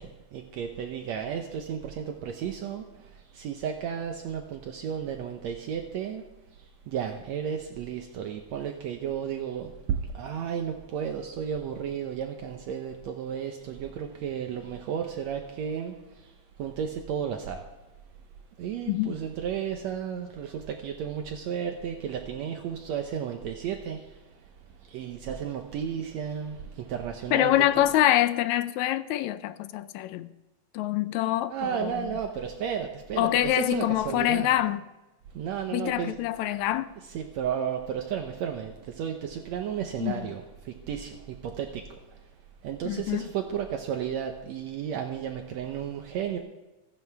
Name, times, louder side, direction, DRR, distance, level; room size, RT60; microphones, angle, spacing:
voice 1, 0.0-6.2 6.5-17.7 18.6-24.4 24.8-27.6 31.5-34.6 35.3-36.2 37.1-42.2 42.6-46.4, right 8 dB, 70° right, 4 dB, 2.1 m, -33 dB
voice 2, 18.9-19.2 27.3-30.3 30.7-32.1 33.2-34.8 35.7-36.9 40.0-40.3 42.8-43.3, left 13 dB, 80° left, 13 dB, 1.9 m, -25 dB
25.0 x 11.0 x 3.5 m, 1.1 s
omnidirectional pair, 3.4 m